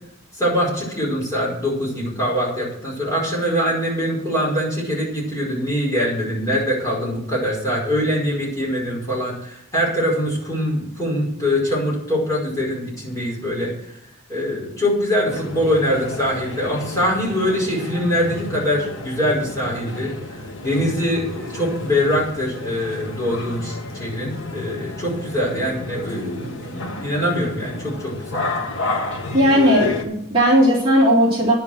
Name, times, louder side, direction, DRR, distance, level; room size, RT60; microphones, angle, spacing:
voice 1, 0.3-13.9 14.3-28.5, equal, 15° left, -5 dB, 5.1 m, -23 dB
sound 1, 15.3-30.0, left 2 dB, 55° left, 1.7 m, -31 dB
voice 2, 29.3-31.5, equal, 25° right, -7 dB, 3.4 m, -16 dB
10.0 x 7.3 x 8.0 m, 0.79 s
head